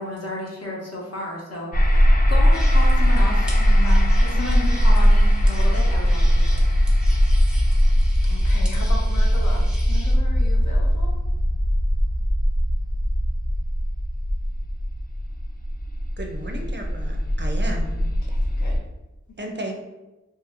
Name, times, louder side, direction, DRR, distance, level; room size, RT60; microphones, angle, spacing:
voice 1, 0.0-6.7, left 2 dB, 60° left, -4 dB, 0.9 m, -33 dB
sound 1, 1.7-18.8, equal, 30° left, 0.4 m, -19 dB
sound 2, 2.5-10.1, equal, 5° right, 0.7 m, -42 dB
voice 2, 4.3-4.8 8.2-11.2 18.0-18.8 19.3-19.4, left 3 dB, 80° left, -1 dB, 0.6 m, -37 dB
voice 3, 16.2-18.0 19.4-19.7, right 1 dB, 40° right, 2 dB, 0.4 m, -33 dB
2.9 x 2.7 x 2.5 m, 1.0 s
wide cardioid pair, 55°, 29 cm